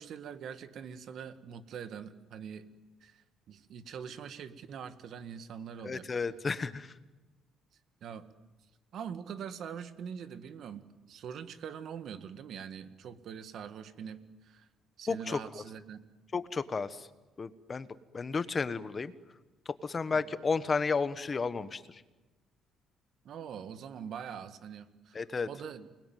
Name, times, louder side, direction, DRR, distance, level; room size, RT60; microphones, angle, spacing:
voice 1, 0.0-2.7 3.0-6.1 8.0-8.3 8.9-14.7 15.0-16.0 20.1-20.2 23.2-25.2 25.5-25.9, right 7 dB, 60° right, 10 dB, 1.8 m, -43 dB
voice 2, 5.8-6.9 15.1-15.4 16.3-17.1 17.4-17.9 18.1-19.1 19.8-22.0 25.1-25.5, left 4 dB, 30° left, 13 dB, 1.2 m, -32 dB
29.0 x 21.5 x 9.3 m, 1.2 s
cardioid pair, 130°, 0 cm